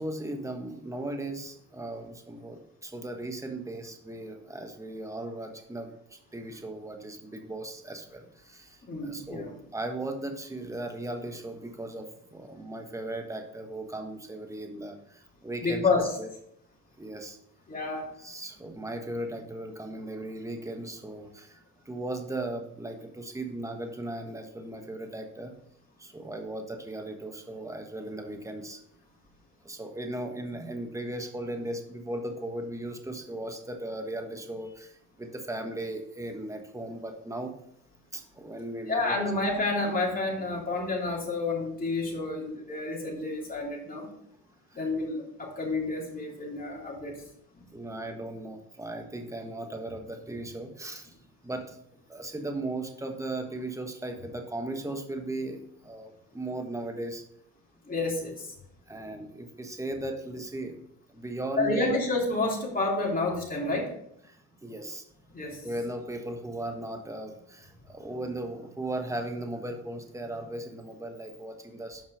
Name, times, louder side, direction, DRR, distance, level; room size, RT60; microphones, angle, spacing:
voice 1, 0.0-16.3 17.0-17.4 18.2-25.5 26.0-28.8 29.6-37.5 38.1-39.2 44.7-44.8 47.7-51.2 51.4-51.8 52.1-57.2 58.9-60.7 61.1-62.0 64.3-65.0 65.6-72.0, right 1 dB, 10° right, 4 dB, 1.3 m, -37 dB
voice 2, 8.8-9.5 15.6-16.0 17.7-18.0 38.9-44.1 44.7-47.1 47.5-47.6 57.9-58.5 61.6-63.9 65.3-65.6, left 3 dB, 30° left, -2 dB, 3.0 m, -29 dB
7.8 x 5.4 x 5.0 m, 0.72 s
cardioid pair, 90°, 30 cm